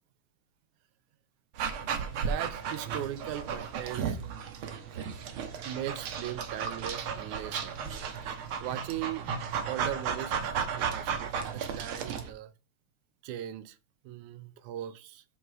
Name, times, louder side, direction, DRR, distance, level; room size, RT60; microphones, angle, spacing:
Dog, 1.6-12.3, right 6 dB, 60° right, 1.6 m, -34 dB
voice 1, 2.1-4.2 5.6-8.1 8.6-9.3 9.7-12.5 13.2-13.8 14.1-15.2, right 12 dB, 80° right, 2.1 m, -38 dB
6.4 x 5.5 x 5.9 m
omnidirectional pair, 3.4 m